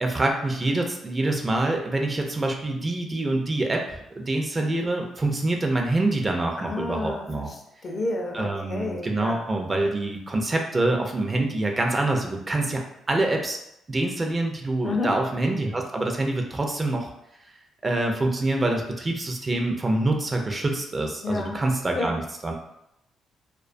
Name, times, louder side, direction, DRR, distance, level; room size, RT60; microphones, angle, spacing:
voice 1, 0.0-7.5 8.3-13.6 13.9-17.1 17.8-22.5, right 2 dB, 25° right, 2 dB, 0.4 m, -26 dB
voice 2, 6.6-7.2 7.8-9.4 14.8-15.1 21.2-21.6 21.9-22.1, left 3 dB, 45° left, 2 dB, 0.4 m, -29 dB
2.3 x 2.2 x 2.5 m, 0.81 s
cardioid pair, 90°, 0 cm